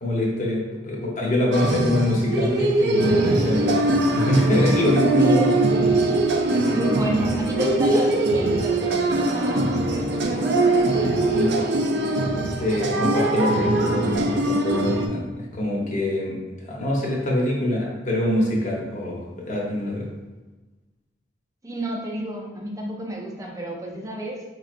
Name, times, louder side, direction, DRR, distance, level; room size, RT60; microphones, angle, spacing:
voice 1, 0.0-5.4 6.1-6.2 11.3-11.5 12.6-20.1, left 1 dB, 45° left, -3 dB, 1.0 m, -24 dB
sound 1, 1.5-15.1, right 2 dB, 65° right, 0.5 m, -22 dB
voice 2, 5.1-5.6 6.7-11.2 21.6-24.4, right 1 dB, 20° right, 0 dB, 0.5 m, -31 dB
5.0 x 3.1 x 2.5 m, 1.2 s
head